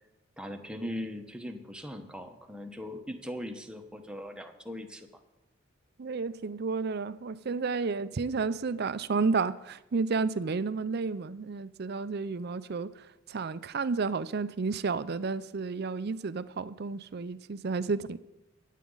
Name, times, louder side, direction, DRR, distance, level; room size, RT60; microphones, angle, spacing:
voice 1, 0.4-5.1, equal, 5° right, 1.0 m, -40 dB
voice 2, 6.0-12.9 13.3-18.2, right 4 dB, 50° right, 0.5 m, -31 dB
24.5 x 8.4 x 3.9 m
head